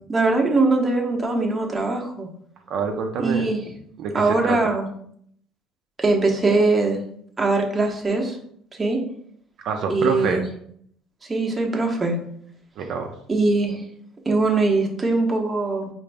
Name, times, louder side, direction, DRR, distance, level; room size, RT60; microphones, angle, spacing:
voice 1, 0.1-2.3 3.2-3.6 4.1-4.9 6.0-7.0 7.4-8.4 8.8-9.0 9.9-10.4 11.3-12.2 13.3-13.8 14.3-15.9, right 3 dB, 20° right, 0 dB, 0.8 m, -21 dB
voice 2, 2.7-3.5 4.0-4.6 9.6-10.4 12.8-13.1, right 5 dB, 60° right, 3 dB, 0.5 m, -26 dB
4.9 x 2.6 x 3.3 m, 0.66 s
cardioid pair, 125°, 0 cm